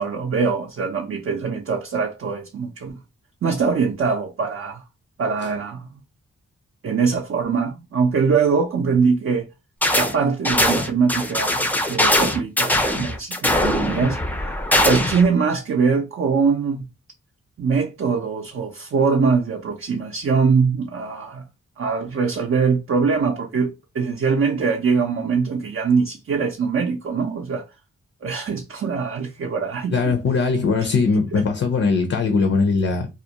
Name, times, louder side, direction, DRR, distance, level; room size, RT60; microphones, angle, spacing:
voice 1, 0.0-3.0 3.4-4.8 5.2-5.9 6.8-9.5 9.9-14.2 14.8-16.8 17.6-21.4 21.8-27.6 28.2-30.1 30.8-30.9 31.3-31.4, right 5 dB, 45° right, 0.5 m, -22 dB
sound 1, 9.8-10.1 10.4-15.3, left 1 dB, 5° left, 0.4 m, -21 dB
voice 2, 29.9-33.1, left 4 dB, 55° left, 0.5 m, -20 dB
2.4 x 2.0 x 2.8 m
cardioid pair, 45°, 30 cm